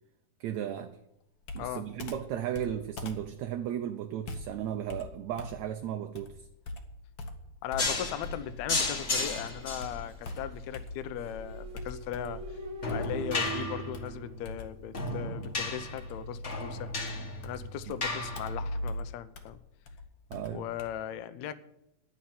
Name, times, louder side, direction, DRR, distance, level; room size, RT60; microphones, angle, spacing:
voice 1, 0.4-1.0 1.5-6.3 17.9-18.0 20.3-20.7, right 10 dB, 75° right, 6 dB, 1.9 m, -35 dB
Computer keyboard, 1.4-9.1 9.4-11.3 11.8-12.5 12.9-20.9, left 2 dB, 55° left, 1.4 m, -44 dB
voice 2, 7.6-12.4 12.9-16.9 17.4-19.6 20.5-21.5, left 11 dB, 75° left, 13 dB, 1.8 m, -38 dB
sound 1, 7.8-19.0, left 2 dB, 35° left, 1.2 m, -35 dB
sound 2, 11.2-15.0, right 3 dB, 55° right, 1.9 m, -42 dB
10.5 x 7.4 x 9.4 m, 0.84 s
omnidirectional pair, 3.6 m